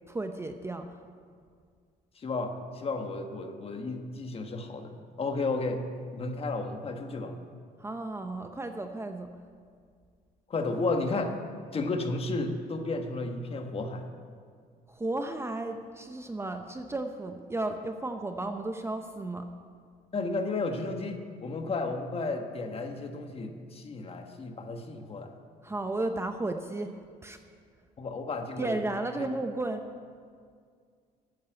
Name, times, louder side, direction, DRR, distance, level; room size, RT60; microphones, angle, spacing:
voice 1, 0.1-0.9 7.8-9.3 14.9-19.5 25.6-27.0 27.2-27.4 28.6-29.8, right 2 dB, 15° right, 6 dB, 0.7 m, -33 dB
voice 2, 2.1-5.8 6.1-7.3 10.5-11.4 11.7-14.1 20.1-25.3 28.0-28.8 29.2-29.3, left 3 dB, 35° left, 5 dB, 1.4 m, -33 dB
11.5 x 9.3 x 7.9 m, 2.1 s
cardioid pair, 110°, 17 cm